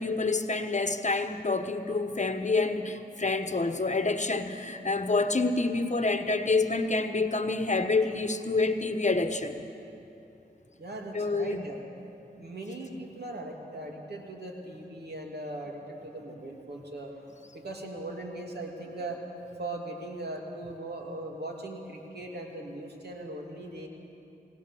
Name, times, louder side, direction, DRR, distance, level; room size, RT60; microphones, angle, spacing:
voice 1, 0.0-9.6 11.1-11.7, left 3 dB, 45° left, 8 dB, 1.2 m, -27 dB
voice 2, 10.8-11.8 12.4-19.2 19.6-23.9, right 2 dB, 75° right, 0 dB, 2.8 m, -39 dB
20.5 x 18.0 x 7.2 m, 2.8 s
cardioid pair, 45°, 17 cm